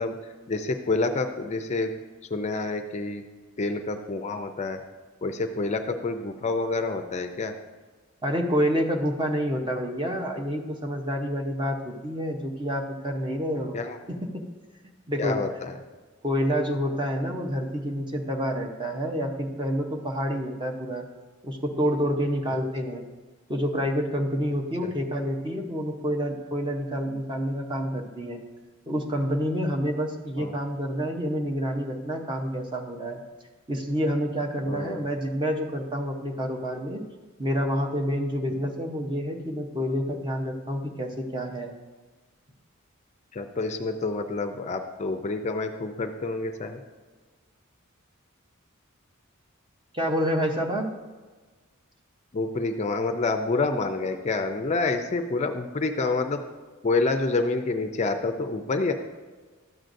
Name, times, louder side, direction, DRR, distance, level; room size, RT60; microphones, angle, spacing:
voice 1, 0.0-1.9 2.3-3.2 3.6-4.8 5.2-7.5 13.7-14.0 15.2-15.7 24.8-24.9 30.4-30.5 34.7-35.0 43.3-46.8 52.3-56.4 56.8-58.9, left 3 dB, 35° left, 7 dB, 0.4 m, -28 dB
voice 2, 8.2-13.8 14.1-14.4 15.1-15.4 16.2-21.0 21.4-23.1 23.5-28.4 28.9-33.2 33.7-37.0 37.4-41.7 49.9-50.9, equal, 20° right, 3 dB, 0.7 m, -28 dB
12.0 x 7.6 x 2.6 m, 1.3 s
head